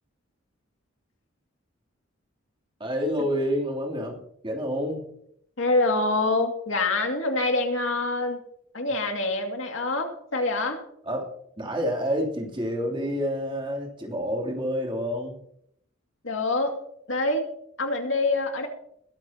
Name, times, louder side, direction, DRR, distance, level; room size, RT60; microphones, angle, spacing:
voice 1, 2.8-4.2 4.4-5.0 11.0-15.4, equal, 25° right, -1 dB, 3.0 m, -28 dB
voice 2, 5.6-8.4 8.7-10.8 16.2-16.8 17.1-17.5 17.8-18.7, left 2 dB, 70° left, 3 dB, 2.3 m, -25 dB
21.0 x 12.0 x 2.9 m, 0.73 s
head